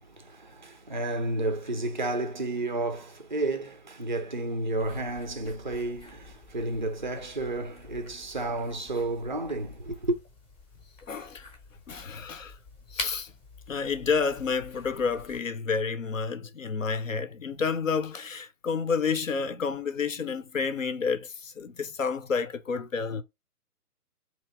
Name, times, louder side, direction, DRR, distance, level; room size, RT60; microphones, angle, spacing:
voice 1, 0.0-10.2, right 2 dB, 35° right, 0.5 m, -31 dB
sound 1, 4.8-15.4, left 2 dB, 15° left, 0.9 m, -46 dB
voice 2, 11.1-11.5 11.9-12.6 12.9-13.3 13.7-23.2, left 5 dB, 55° left, 0.8 m, -30 dB
3.0 x 2.8 x 4.5 m
figure-of-eight pair, 140°, 46 cm